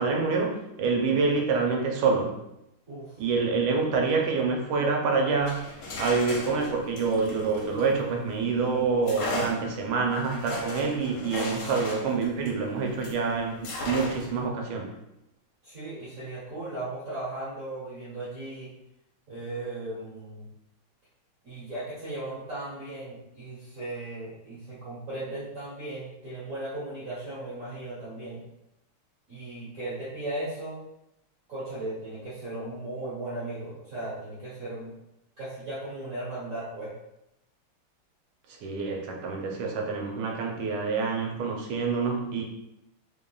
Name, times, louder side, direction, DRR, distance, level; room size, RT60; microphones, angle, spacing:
voice 1, 0.0-2.3 3.2-5.7 6.0-14.9 38.6-42.4, right 4 dB, 80° right, 1 dB, 1.5 m, -27 dB
sound 1, 5.3-8.4 9.0-13.2 13.6-14.4, left 2 dB, 65° left, 1.4 m, -36 dB
voice 2, 15.6-18.7 19.3-20.5 21.4-28.4 29.3-30.8 31.5-34.9 35.4-36.9, right 2 dB, 45° right, -11 dB, 1.4 m, -37 dB
3.7 x 3.6 x 2.3 m, 0.86 s
omnidirectional pair, 2.4 m